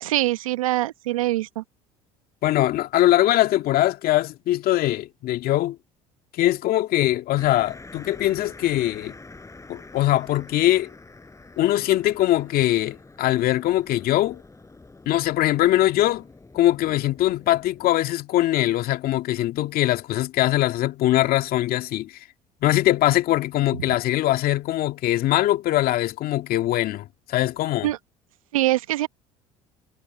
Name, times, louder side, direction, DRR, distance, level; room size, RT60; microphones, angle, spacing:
voice 1, 0.0-1.6 27.8-28.0 28.5-29.1, right 16 dB, 85° right, 1.1 m, -23 dB
voice 2, 2.4-5.8 6.4-9.1 9.7-10.9 11.6-14.4 15.1-16.2 16.5-22.2 22.6-27.9, left 14 dB, 60° left, 2.1 m, -22 dB
sound 1, 7.4-17.9, left 3 dB, 15° left, 6.4 m, -46 dB
hypercardioid pair, 65°, 17 cm